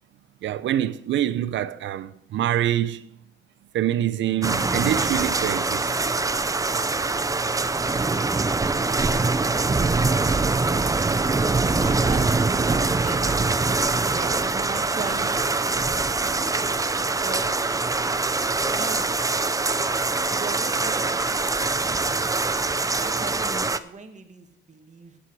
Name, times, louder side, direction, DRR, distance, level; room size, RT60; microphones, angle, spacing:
voice 1, 0.4-3.0 3.7-5.9, right 11 dB, 70° right, 0.8 m, -25 dB
sound 1, 4.4-23.8, right 3 dB, 15° right, 0.7 m, -23 dB
voice 2, 11.7-13.7 14.1-15.5 16.2-16.8 17.1-17.8 18.7-19.3 20.3-21.9 22.4-25.2, right 4 dB, 35° right, 1.9 m, -39 dB
15.5 x 8.9 x 4.8 m
cardioid pair, 90°, 20 cm